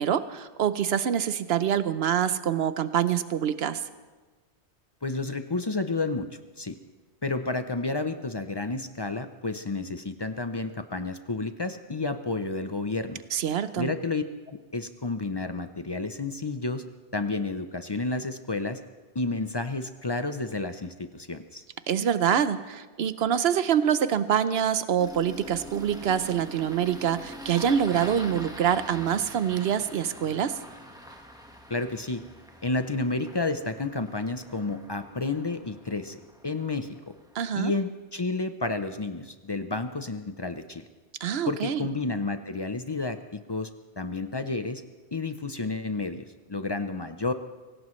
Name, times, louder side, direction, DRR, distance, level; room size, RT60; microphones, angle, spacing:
voice 1, 0.0-3.8 13.3-13.9 21.9-30.6 37.3-37.7 41.2-41.9, right 9 dB, 65° right, 13 dB, 0.9 m, -25 dB
voice 2, 5.0-6.3 6.6-6.7 7.2-13.2 13.8-16.8 17.1-18.8 19.1-21.6 31.7-32.2 32.6-36.9 37.6-40.8 41.5-43.7 44.0-44.8 45.1-47.3, left 3 dB, 35° left, 9 dB, 0.4 m, -31 dB
Engine starting, 25.0-37.4, equal, 5° right, 1.3 m, -44 dB
24.0 x 17.5 x 3.1 m, 1.3 s
omnidirectional pair, 1.2 m